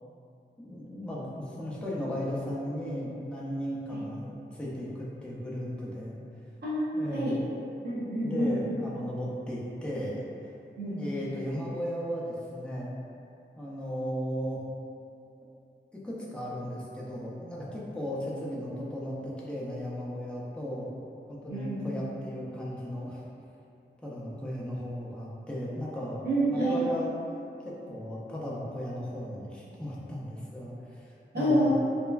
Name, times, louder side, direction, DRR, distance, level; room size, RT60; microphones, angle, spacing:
voice 1, 0.6-6.2 6.9-7.4 8.2-10.2 11.0-12.9 13.6-14.6 16.0-20.9 21.3-23.2 24.0-27.1 27.6-31.7, equal, 5° left, -7 dB, 0.5 m, -36 dB
voice 2, 6.6-7.3 7.8-8.6 10.8-11.0 21.5-21.9 26.2-26.8 31.3-31.7, right 1 dB, 60° right, -11 dB, 1.1 m, -28 dB
3.1 x 2.1 x 2.3 m, 2.6 s
wide cardioid pair, 90°, 19 cm